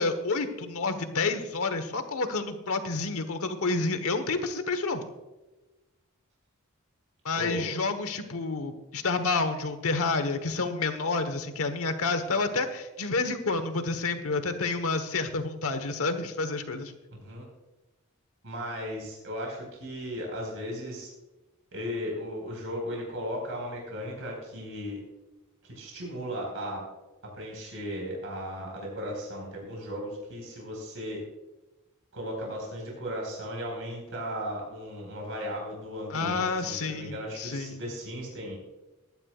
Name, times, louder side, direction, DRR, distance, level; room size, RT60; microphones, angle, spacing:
voice 1, 0.0-5.0 7.2-16.9 36.1-37.8, left 3 dB, 70° left, 9 dB, 1.2 m, -29 dB
voice 2, 7.3-7.7 17.1-17.5 18.4-21.1 21.7-25.0 25.7-26.9 27.2-31.2 32.1-38.6, equal, 65° right, -1 dB, 4.8 m, -36 dB
21.5 x 11.0 x 2.4 m, 1.1 s
head